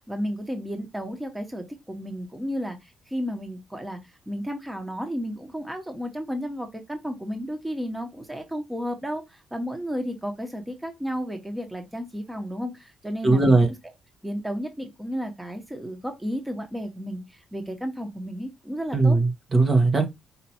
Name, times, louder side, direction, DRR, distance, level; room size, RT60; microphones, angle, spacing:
voice 1, 0.1-4.0 4.3-13.7 14.2-17.2 17.5-19.2, equal, 10° right, 1.4 m, -33 dB
voice 2, 13.2-13.7 18.9-20.1, right 3 dB, 35° right, 1.4 m, -19 dB
5.4 x 2.9 x 3.0 m
cardioid pair, 90°, 0 cm